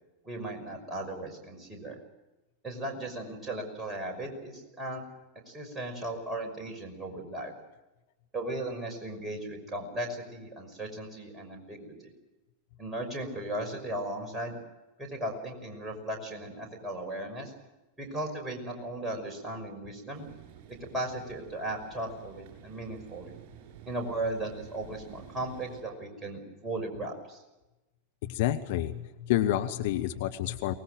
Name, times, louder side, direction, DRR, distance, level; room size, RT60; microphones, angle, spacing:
voice 1, 0.2-2.0 2.6-5.0 5.5-7.5 8.3-12.1 12.8-14.6 15.0-17.5 18.0-20.2 20.9-23.3 23.9-27.4, right 1 dB, 10° right, 1 dB, 5.8 m, -36 dB
sound 1, 20.1-25.8, right 10 dB, 45° right, 7.4 m, -51 dB
voice 2, 28.2-30.7, left 13 dB, 50° left, 8 dB, 1.1 m, -29 dB
24.0 x 19.5 x 7.8 m, 1.0 s
figure-of-eight pair, 90°, 0 cm